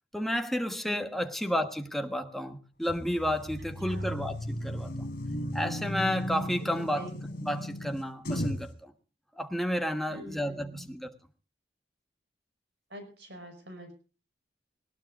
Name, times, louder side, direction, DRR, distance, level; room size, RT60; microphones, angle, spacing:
voice 1, 0.1-5.1 5.5-7.1 7.4-8.9 9.4-11.1, equal, ahead, 1.3 m, -31 dB
sound 1, 2.9-8.7, equal, 50° left, 4.8 m, -35 dB
voice 2, 3.9-4.2 7.0-7.1 10.1-10.9 12.9-13.9, equal, 65° right, 6.0 m, -46 dB
19.5 x 18.5 x 2.5 m
head